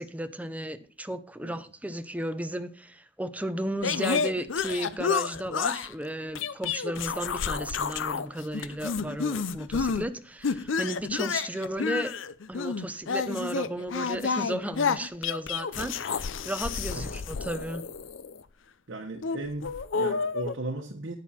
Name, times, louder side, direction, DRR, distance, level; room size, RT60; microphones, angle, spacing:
voice 1, 0.0-12.1 12.5-17.9, right 1 dB, 10° right, 0.7 m, -34 dB
sound 1, 3.8-5.9 6.4-8.3 8.5-10.1 10.4-18.4 19.2-20.5, left 5 dB, 75° left, 0.6 m, -30 dB
voice 2, 18.9-21.1, right 2 dB, 70° right, 1.3 m, -36 dB
11.0 x 9.4 x 4.3 m
head